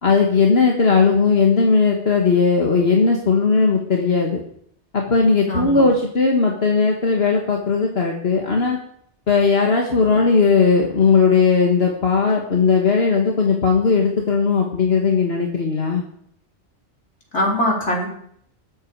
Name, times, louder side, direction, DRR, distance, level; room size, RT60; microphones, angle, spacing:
voice 1, 0.0-4.4 4.9-8.8 9.3-16.0, left 4 dB, 60° left, 0 dB, 1.9 m, -17 dB
voice 2, 5.5-5.9 17.3-18.1, equal, 80° left, -2 dB, 4.6 m, -21 dB
15.5 x 13.0 x 4.8 m, 0.68 s
omnidirectional pair, 1.2 m